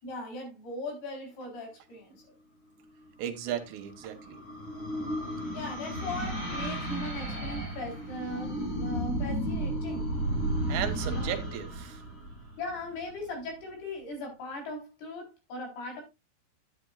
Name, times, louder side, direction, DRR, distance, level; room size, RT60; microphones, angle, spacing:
voice 1, 0.0-2.2 5.5-10.1 11.0-11.3 12.6-16.0, left 2 dB, 65° left, 5.6 m, -39 dB
voice 2, 3.2-4.4 10.7-12.0, right 10 dB, 80° right, 3.3 m, -35 dB
sound 1, 3.5-13.0, right 1 dB, 20° left, 1.8 m, -33 dB
10.5 x 9.7 x 2.4 m
omnidirectional pair, 4.9 m